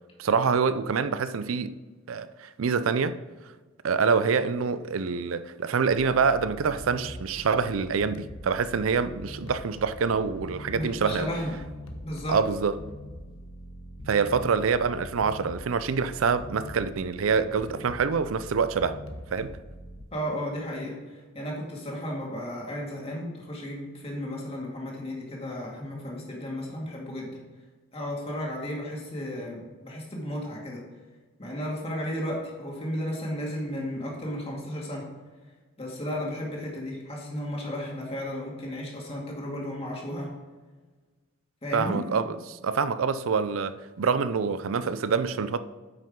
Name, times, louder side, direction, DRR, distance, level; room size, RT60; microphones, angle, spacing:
voice 1, 0.2-1.7 2.1-3.2 3.8-11.3 12.3-12.8 14.1-19.0 19.3-19.6 41.7-45.6, right 5 dB, 90° right, 0.5 m, -26 dB
sound 1, 5.9-20.0, equal, 85° left, 1.1 m, -43 dB
voice 2, 10.7-11.6 12.0-12.4 20.1-27.4 27.9-30.8 31.4-35.1 35.8-40.3 41.6-42.0, equal, 30° left, 2.2 m, -34 dB
9.0 x 6.1 x 3.8 m
head